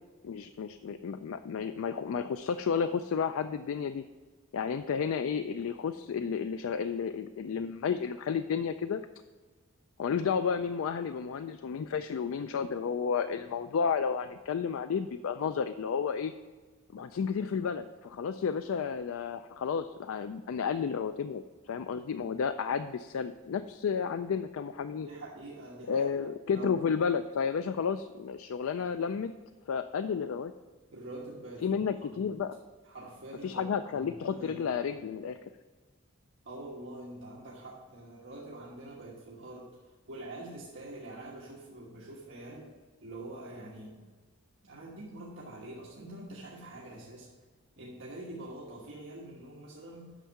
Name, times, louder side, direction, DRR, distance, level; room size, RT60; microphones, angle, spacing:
voice 1, 0.2-4.0 4.5-9.0 10.0-16.3 16.9-25.1 25.9-29.3 29.7-30.5 31.6-32.6 33.4-35.4, left 6 dB, 80° left, 11 dB, 0.4 m, -32 dB
voice 2, 25.0-26.1 26.5-26.7 30.9-32.3 32.8-33.6 33.9-35.0 36.4-39.8 40.1-42.7 43.0-44.0 44.6-47.3 47.8-50.1, right 1 dB, 65° right, -4 dB, 1.3 m, -45 dB
9.0 x 6.3 x 5.8 m, 1.4 s
head